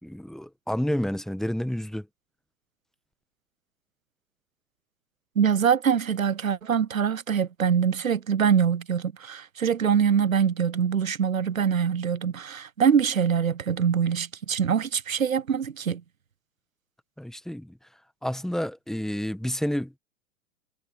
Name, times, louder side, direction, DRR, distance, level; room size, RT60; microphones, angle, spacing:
voice 1, 0.0-2.1 17.2-17.7 18.2-20.0, equal, ahead, 1.7 m, -30 dB
voice 2, 5.4-16.0, right 7 dB, 90° right, 0.8 m, -24 dB
figure-of-eight pair, 100°, 39 cm